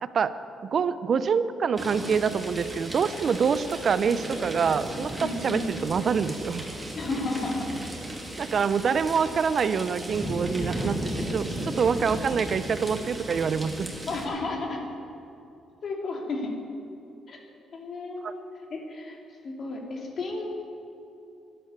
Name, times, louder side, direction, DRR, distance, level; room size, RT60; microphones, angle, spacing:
voice 1, 0.0-0.3 0.6-6.7 8.4-13.9 18.2-18.3, right 6 dB, 50° right, 13 dB, 0.6 m, -26 dB
sound 1, 1.8-14.3, right 1 dB, 15° right, 2.6 m, -35 dB
voice 2, 5.2-5.7 6.9-7.9 14.1-14.8 15.8-16.5 17.3-17.4 17.7-18.4 18.7-19.2 19.4-20.5, left 2 dB, 50° left, 1 dB, 2.4 m, -32 dB
11.0 x 10.0 x 8.2 m, 2.8 s
cardioid pair, 90°, 0 cm